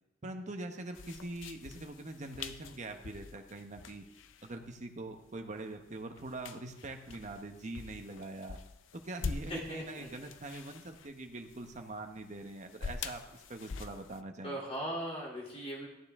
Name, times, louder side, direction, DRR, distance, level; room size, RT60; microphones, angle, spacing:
voice 1, 0.2-4.0 4.4-8.6 9.0-14.5, right 2 dB, 40° right, 5 dB, 1.0 m, -43 dB
sound 1, 0.9-14.2, left 5 dB, 90° left, 0.6 m, -46 dB
voice 2, 9.5-10.1 14.4-15.9, equal, 30° left, -3 dB, 3.1 m, -38 dB
14.0 x 9.4 x 3.6 m, 0.90 s
head